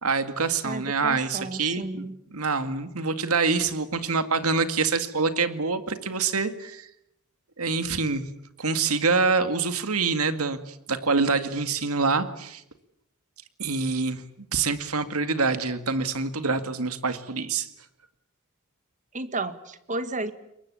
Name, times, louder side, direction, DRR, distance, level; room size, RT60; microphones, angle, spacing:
voice 1, 0.0-2.0 2.3-6.9 7.6-8.3 8.6-12.6 13.6-14.2 14.5-17.7, right 4 dB, 80° right, 10 dB, 2.1 m, -26 dB
voice 2, 0.6-2.2 19.1-20.3, right 2 dB, 35° right, 11 dB, 1.7 m, -33 dB
28.0 x 23.0 x 8.6 m, 0.79 s
head